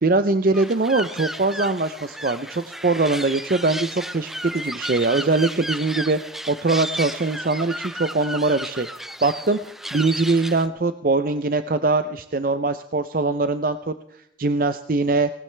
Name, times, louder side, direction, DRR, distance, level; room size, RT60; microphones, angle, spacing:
voice 1, 0.0-6.2 6.5-9.6 9.9-13.9 14.4-15.3, right 3 dB, 50° right, 10 dB, 0.5 m, -22 dB
sound 1, 0.5-10.7, equal, ahead, 0.5 m, -33 dB
19.0 x 18.5 x 3.3 m, 0.81 s
head